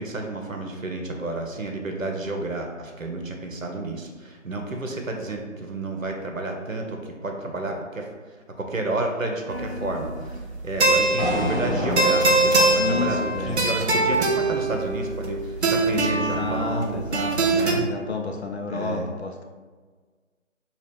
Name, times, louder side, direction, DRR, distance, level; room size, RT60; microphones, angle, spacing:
voice 1, 0.0-17.0 17.5-17.9 18.7-19.0, right 2 dB, 90° right, 2 dB, 0.8 m, -31 dB
sound 1, 9.5-17.7, right 2 dB, 55° right, 0.6 m, -23 dB
sound 2, 11.2-15.3, equal, ahead, 1.3 m, -30 dB
voice 2, 12.8-13.6 15.9-19.4, left 4 dB, 55° left, 2 dB, 0.6 m, -30 dB
4.1 x 2.4 x 3.3 m, 1.5 s
figure-of-eight pair, 155°, 39 cm